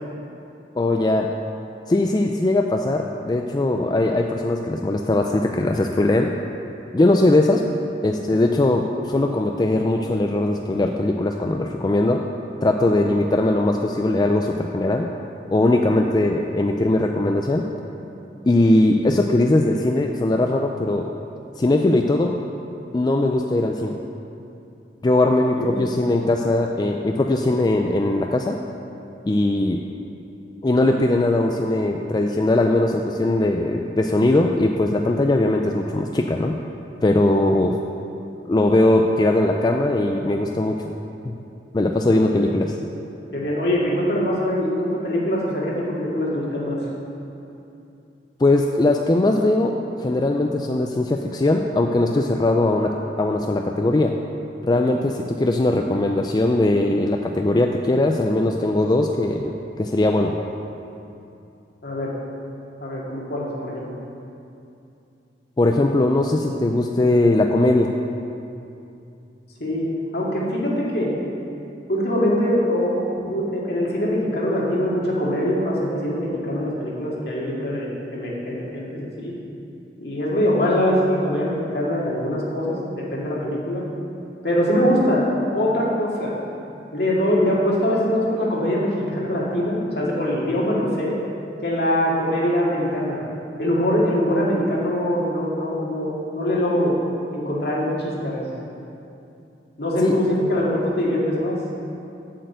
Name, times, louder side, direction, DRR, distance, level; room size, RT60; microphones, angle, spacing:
voice 1, 0.8-1.3 1.9-6.3 6.9-7.6 8.0-12.3 12.6-15.1 15.5-17.7 18.5-21.1 21.6-22.3 22.9-24.0 25.0-28.6 29.3-29.8 30.6-36.5 37.0-37.8 38.5-40.9 41.2-41.4 41.7-42.8 48.4-54.2 54.6-60.4 65.6-67.9 100.0-100.2, left 2 dB, 25° left, 3 dB, 0.4 m, -20 dB
voice 2, 42.1-42.5 43.3-46.9 61.8-62.1 62.8-64.0 69.6-69.9 70.1-71.1 71.9-79.3 80.0-83.8 84.4-85.3 85.5-86.3 86.9-91.2 91.6-93.2 93.6-96.9 97.3-98.5 99.8-101.6, equal, 65° left, -4 dB, 2.1 m, -23 dB
7.6 x 6.7 x 7.9 m, 2.7 s
head